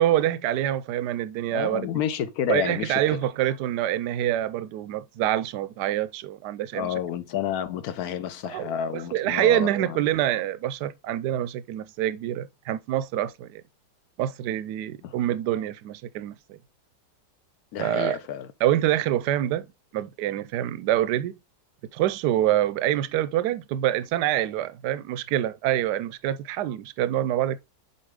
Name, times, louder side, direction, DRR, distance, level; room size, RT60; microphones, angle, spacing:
voice 1, 0.0-1.9 2.5-6.9 8.5-13.6 14.2-16.6 17.8-18.2 18.6-19.7 19.9-21.4 21.9-27.6, right 12 dB, 75° right, 1.1 m, -26 dB
voice 2, 1.5-3.2 6.7-10.0 15.0-15.1 17.7-18.5, left 10 dB, 65° left, 1.1 m, -30 dB
6.6 x 4.5 x 3.6 m
omnidirectional pair, 2.0 m